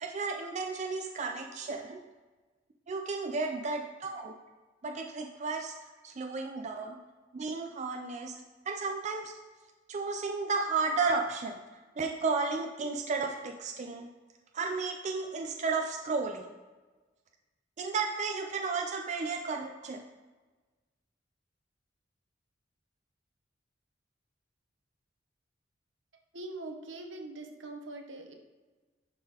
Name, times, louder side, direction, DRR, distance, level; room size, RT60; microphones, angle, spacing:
voice 1, 0.0-2.0 2.9-4.3 4.8-5.7 6.0-7.0 7.3-8.3 8.7-9.3 9.9-11.5 12.0-14.1 14.5-16.5 17.8-20.0, right 4 dB, 40° right, 2 dB, 0.4 m, -33 dB
voice 2, 3.4-3.7 4.1-4.2 6.8-6.9 8.3-8.4 15.6-15.7 18.8-19.3 26.3-28.4, right 2 dB, 75° right, 3 dB, 0.9 m, -45 dB
11.0 x 3.8 x 2.9 m, 1.3 s
head